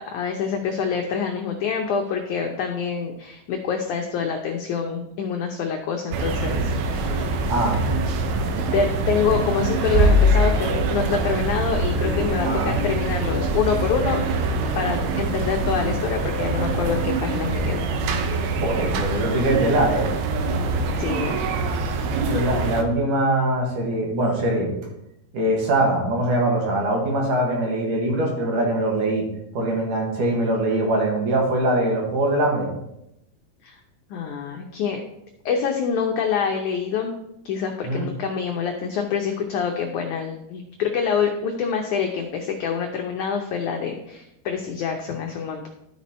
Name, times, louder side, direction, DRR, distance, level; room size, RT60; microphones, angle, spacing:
voice 1, 0.0-7.5 8.7-14.2 14.8-17.8 21.0-21.4 33.6-33.8 34.1-35.0 35.5-37.1 37.5-45.7, left 6 dB, 80° left, 2 dB, 1.7 m, -26 dB
sound 1, 6.1-22.8, right 2 dB, 75° right, 2.7 m, -24 dB
voice 2, 7.5-7.8 12.4-12.7 17.7-17.8 18.5-20.1 22.2-24.7 25.3-29.3 29.5-32.7 37.8-38.1, right 1 dB, 60° right, -1 dB, 3.1 m, -22 dB
13.0 x 5.8 x 4.2 m, 0.83 s
omnidirectional pair, 4.5 m